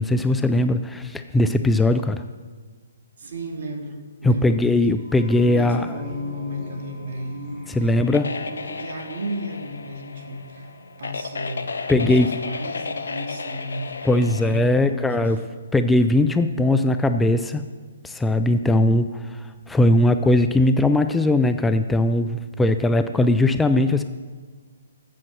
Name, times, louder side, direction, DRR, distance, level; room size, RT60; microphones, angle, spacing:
voice 1, 0.0-2.2 4.2-5.9 7.7-8.3 11.9-12.3 14.0-15.4 15.7-17.6 18.0-24.0, left 1 dB, 5° left, 9 dB, 0.3 m, -19 dB
voice 2, 3.2-4.6 5.4-10.7 11.0-15.3, equal, 60° right, 3 dB, 1.8 m, -34 dB
sound 1, 5.0-14.3, left 1 dB, 25° right, 2.4 m, -44 dB
sound 2, 8.0-14.7, left 4 dB, 75° left, 0.7 m, -33 dB
7.7 x 7.3 x 6.1 m, 1.5 s
hypercardioid pair, 135°, 0 cm